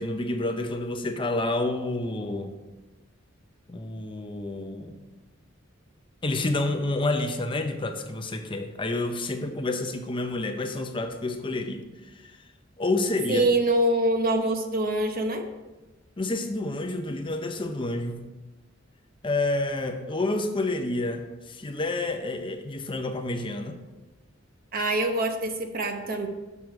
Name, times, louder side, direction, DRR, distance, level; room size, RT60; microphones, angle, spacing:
voice 1, 0.0-2.5 3.7-5.0 6.2-12.4 12.8-13.5 16.2-18.3 19.2-23.8, left 2 dB, 25° left, 6 dB, 0.6 m, -29 dB
voice 2, 13.3-15.5 24.7-26.3, right 1 dB, 50° right, 5 dB, 0.9 m, -25 dB
6.9 x 6.1 x 4.6 m, 1.1 s
head